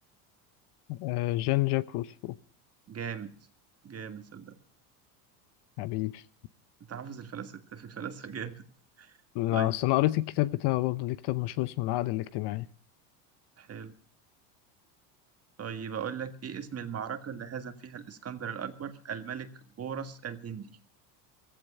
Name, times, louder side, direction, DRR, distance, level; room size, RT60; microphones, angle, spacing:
voice 1, 0.9-2.4 5.8-6.2 9.3-12.7, left 17 dB, 55° left, 0.8 m, -28 dB
voice 2, 2.9-3.3 3.8-4.6 6.9-8.6 9.0-9.2 9.5-9.8 13.6-13.9 15.6-20.7, right 7 dB, 30° right, 1.8 m, -38 dB
15.5 x 15.0 x 5.4 m
supercardioid pair, 100°, 48 cm